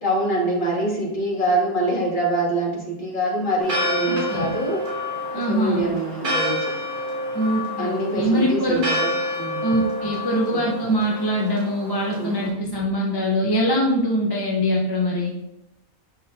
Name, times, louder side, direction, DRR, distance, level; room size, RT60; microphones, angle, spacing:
voice 1, 0.0-4.8 5.3-6.7 7.8-9.1 9.4-9.7 10.5-10.7 12.2-12.3, right 1 dB, 35° left, -6 dB, 2.6 m, -25 dB
Church bell, 3.6-12.5, left 1 dB, 60° right, 2.7 m, -28 dB
voice 2, 4.1-4.6 5.3-5.9 7.3-8.8 9.6-15.3, equal, 20° left, -3 dB, 0.8 m, -23 dB
8.4 x 5.8 x 2.8 m, 0.90 s
omnidirectional pair, 1.5 m